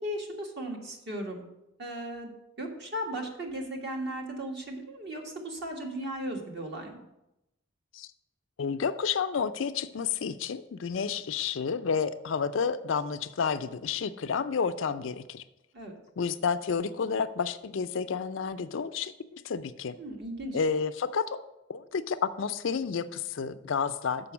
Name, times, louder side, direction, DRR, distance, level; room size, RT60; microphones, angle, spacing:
voice 1, 0.0-1.5 1.8-2.3 2.6-7.0 15.7-16.0 20.0-20.6, right 1 dB, 60° right, 1 dB, 1.6 m, -36 dB
voice 2, 8.6-15.4 16.2-20.0 20.5-21.4 21.7-24.3, left 6 dB, 75° left, 12 dB, 0.5 m, -30 dB
6.9 x 5.2 x 7.1 m, 0.91 s
head